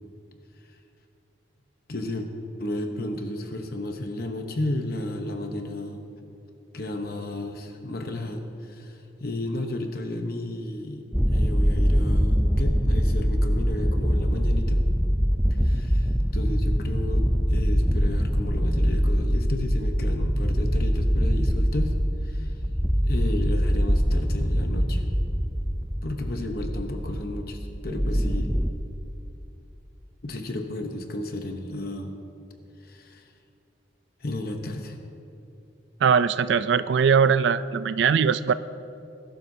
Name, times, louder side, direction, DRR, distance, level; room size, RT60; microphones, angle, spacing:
voice 1, 1.9-2.3 2.6-6.0 6.7-14.8 15.6-22.0 22.2-22.5 23.0-25.1 26.0-28.5 30.2-32.2 32.8-33.3 34.2-35.0, left 1 dB, 50° left, 4 dB, 0.9 m, -33 dB
sound 1, 11.1-28.7, equal, ahead, 0.4 m, -23 dB
voice 2, 36.0-38.5, right 6 dB, 70° right, 14 dB, 0.3 m, -21 dB
20.5 x 12.0 x 2.7 m, 2.7 s
head